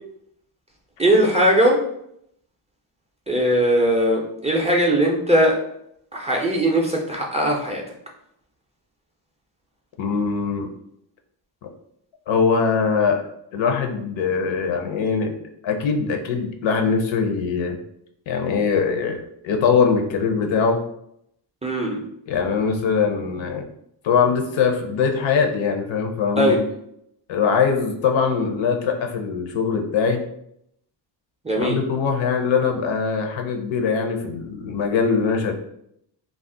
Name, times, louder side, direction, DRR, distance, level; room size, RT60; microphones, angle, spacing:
voice 1, 1.0-1.8 3.3-5.6 6.1-7.8 21.6-22.0 26.4-26.6 31.4-31.8, equal, 15° right, -2 dB, 0.4 m, -19 dB
voice 2, 10.0-10.7 12.3-13.2 13.5-15.3 15.6-17.8 18.3-20.8 22.3-23.7 24.0-26.6 27.3-30.2 31.6-35.5, left 5 dB, 75° left, 3 dB, 0.6 m, -22 dB
2.4 x 2.1 x 3.6 m, 0.75 s
cardioid pair, 105°, 46 cm